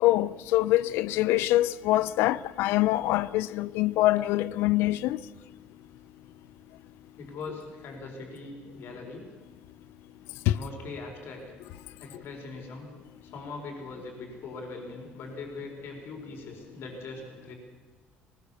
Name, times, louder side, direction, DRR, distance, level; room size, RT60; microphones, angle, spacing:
voice 1, 0.0-5.2 10.5-10.6, left 16 dB, 90° left, 0.6 m, -24 dB
voice 2, 7.2-9.3 10.5-11.4 12.0-12.9 13.2-17.5, left 3 dB, 70° left, 4.4 m, -41 dB
20.0 x 19.5 x 7.0 m
cardioid pair, 105°, 4 cm